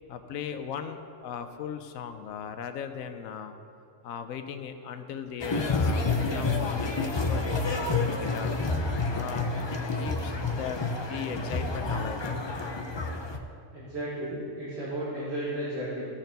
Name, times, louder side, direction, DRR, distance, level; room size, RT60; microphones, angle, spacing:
voice 1, 0.1-3.5 4.0-7.4 8.0-8.5 9.1-12.4, left 7 dB, 85° left, 8 dB, 1.0 m, -38 dB
sound 1, 5.4-13.4, left 3 dB, 40° left, 0.3 m, -29 dB
voice 2, 13.7-16.1, right 1 dB, 50° right, -8 dB, 2.0 m, -34 dB
16.0 x 6.5 x 4.0 m, 2.6 s
omnidirectional pair, 1.4 m